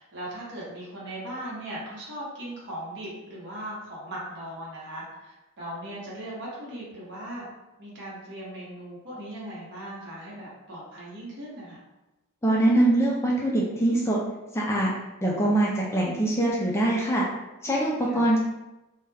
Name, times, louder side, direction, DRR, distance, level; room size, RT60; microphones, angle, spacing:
voice 1, 0.0-7.5 7.8-11.8 18.0-18.3, right 1 dB, 55° right, -6 dB, 1.0 m, -38 dB
voice 2, 12.4-14.2 14.5-14.9 15.2-17.3 17.6-18.4, right 1 dB, 10° left, -4 dB, 0.4 m, -23 dB
2.3 x 2.1 x 3.3 m, 0.99 s
head